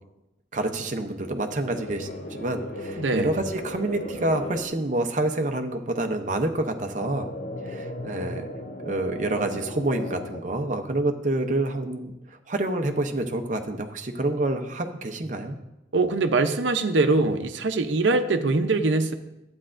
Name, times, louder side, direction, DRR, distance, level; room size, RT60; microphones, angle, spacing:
voice 1, 0.5-7.3 7.6-8.4 8.8-15.6, right 2 dB, 40° right, 5 dB, 0.7 m, -28 dB
sound 1, 1.7-4.6 7.0-10.4, left 1 dB, 45° left, 0.8 m, -36 dB
voice 2, 3.0-3.4 15.9-19.1, right 3 dB, 80° right, 8 dB, 0.6 m, -23 dB
12.0 x 8.7 x 2.5 m, 0.92 s
head